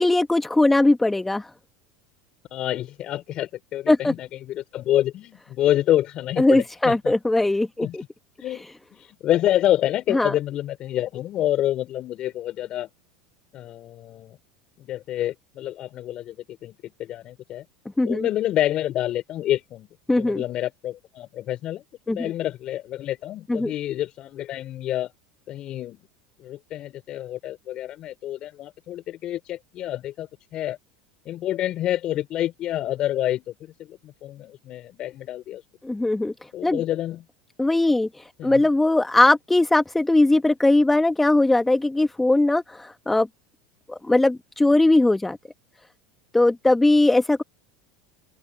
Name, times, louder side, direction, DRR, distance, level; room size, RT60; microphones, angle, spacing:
voice 1, 0.0-1.5 3.9-4.1 6.4-8.0 10.1-10.3 18.0-18.3 20.1-20.4 22.1-22.3 23.5-23.7 35.8-36.3 36.6-36.8 37.6-38.1 38.4-43.3 43.9-45.4 46.3-47.4, left 2 dB, 10° left, 1.3 m, -19 dB
voice 2, 2.5-7.1 7.8-8.0 8.4-8.7 8.9-12.9 13.5-14.4 14.8-17.7 18.0-19.9 20.2-25.1 25.5-26.0 26.4-30.8 31.3-35.6 36.5-37.3 38.4-38.7, left 13 dB, 45° left, 4.0 m, -28 dB
open air
hypercardioid pair, 80°, 2 cm